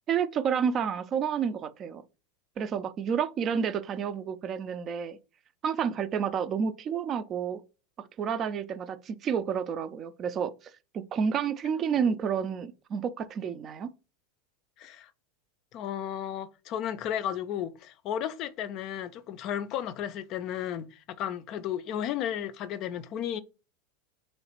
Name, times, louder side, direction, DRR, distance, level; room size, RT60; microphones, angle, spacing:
voice 1, 0.1-2.0 2.6-5.2 5.6-7.6 8.2-10.5 10.9-13.9, right 7 dB, 35° right, 0.4 m, -30 dB
voice 2, 14.8-15.1 15.7-23.4, left 10 dB, 45° left, 0.3 m, -34 dB
3.2 x 3.0 x 2.9 m
hypercardioid pair, 90°, 0 cm